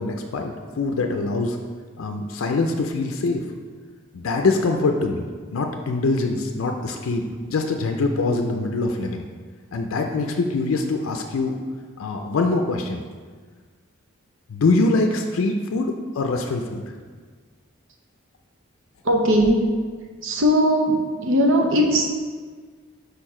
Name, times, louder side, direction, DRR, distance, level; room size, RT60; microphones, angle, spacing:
voice 1, 0.0-1.6 2.0-3.4 4.1-5.3 5.5-9.2 9.7-11.6 12.0-13.0 14.5-16.9, left 3 dB, 80° left, 3 dB, 0.4 m, -24 dB
voice 2, 19.0-19.6 20.2-22.1, equal, 70° right, 2 dB, 0.8 m, -19 dB
5.1 x 4.6 x 4.3 m, 1.5 s
head